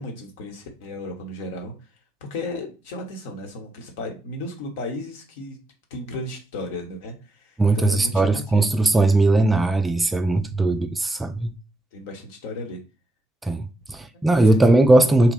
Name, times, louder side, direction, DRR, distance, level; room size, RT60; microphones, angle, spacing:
voice 1, 0.0-1.7 2.2-5.6 5.9-8.8 10.6-10.8 11.9-12.8 14.5-14.6, left 2 dB, 60° left, 0.9 m, -34 dB
voice 2, 7.6-11.5 13.4-15.3, right 2 dB, 10° right, 0.3 m, -19 dB
2.8 x 2.3 x 3.9 m
hypercardioid pair, 90°, 0 cm